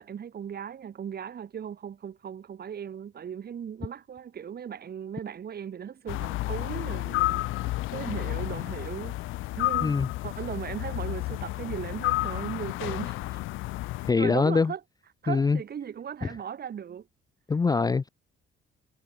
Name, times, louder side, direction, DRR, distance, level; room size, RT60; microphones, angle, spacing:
voice 1, 0.0-9.2 9.6-13.4 14.0-14.8 15.2-17.1, right 8 dB, 50° right, 2.1 m, -37 dB
sound 1, 6.1-14.1, left 18 dB, 90° left, 0.6 m, -31 dB
voice 2, 14.0-14.7 15.3-15.6 17.5-18.1, left 4 dB, 20° left, 0.4 m, -23 dB
cardioid pair, 90°, 20 cm